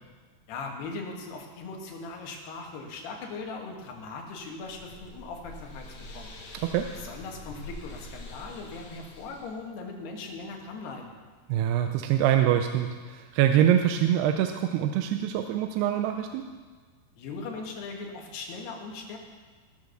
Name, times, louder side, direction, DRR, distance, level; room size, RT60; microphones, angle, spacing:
voice 1, 0.5-6.3 6.9-11.1 17.2-19.2, left 3 dB, 80° left, 1 dB, 3.6 m, -39 dB
sound 1, 4.2-9.6, left 2 dB, 65° left, 3.1 m, -45 dB
voice 2, 11.5-16.5, right 10 dB, 85° right, 6 dB, 2.6 m, -24 dB
18.0 x 7.0 x 6.5 m, 1.4 s
omnidirectional pair, 4.6 m